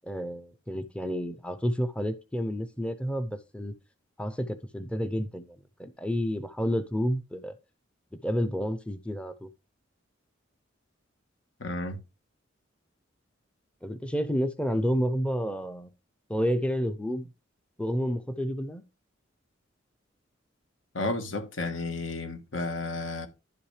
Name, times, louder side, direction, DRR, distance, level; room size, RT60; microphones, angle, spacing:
voice 1, 0.0-3.7 4.2-7.6 8.1-9.5 13.8-15.9 16.3-17.3 17.8-18.8, equal, 5° left, 0.5 m, -30 dB
voice 2, 11.6-12.0 20.9-23.3, left 2 dB, 75° left, 1.4 m, -32 dB
11.0 x 5.9 x 3.2 m
head